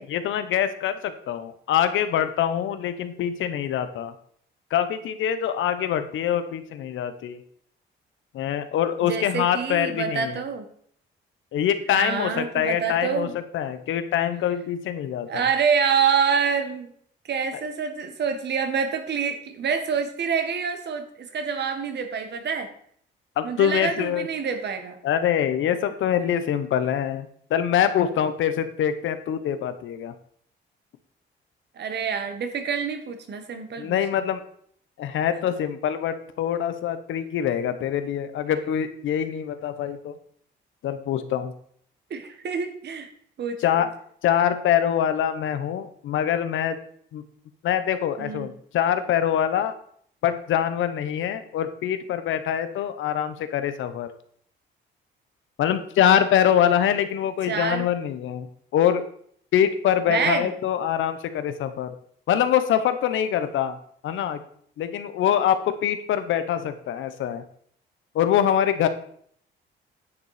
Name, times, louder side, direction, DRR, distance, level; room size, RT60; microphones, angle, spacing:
voice 1, 0.1-4.1 4.7-7.4 8.3-10.4 11.5-15.4 23.4-24.3 25.0-30.1 33.8-34.4 35.0-40.2 40.8-41.5 43.6-43.9 44.2-46.8 47.1-47.2 47.6-49.7 50.2-54.1 55.6-58.5 58.7-59.0 59.5-61.9 62.3-63.8 64.0-64.4 64.8-67.4 68.1-68.9, left 9 dB, 80° left, 10 dB, 1.0 m, -24 dB
voice 2, 9.1-10.7 11.9-13.3 15.3-16.9 17.3-22.7 23.4-25.0 31.7-34.0 42.1-43.1 43.4-43.8 48.2-48.5 57.5-57.9 60.1-60.5, right 6 dB, 60° right, 7 dB, 1.6 m, -26 dB
9.9 x 6.9 x 5.0 m, 0.62 s
cardioid pair, 90°, 20 cm